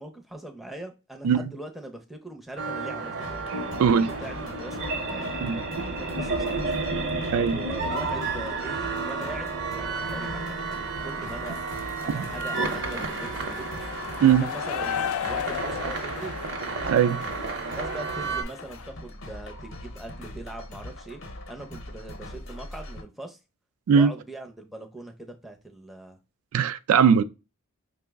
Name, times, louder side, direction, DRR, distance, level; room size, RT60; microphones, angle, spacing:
voice 1, 0.0-3.4 3.9-6.8 7.5-11.6 12.0-13.8 14.4-16.3 17.6-21.2 21.5-23.4 23.9-26.2, right 2 dB, ahead, 0.5 m, -41 dB
sound 1, 2.6-18.4, right 3 dB, 55° right, 0.7 m, -31 dB
sound 2, 3.2-23.0, left 1 dB, 60° left, 0.7 m, -43 dB
sound 3, 11.3-18.9, left 9 dB, 80° left, 0.3 m, -36 dB
voice 2, 16.9-17.2 23.9-24.1 26.5-27.2, right 7 dB, 80° right, 0.3 m, -20 dB
5.2 x 2.1 x 3.3 m
head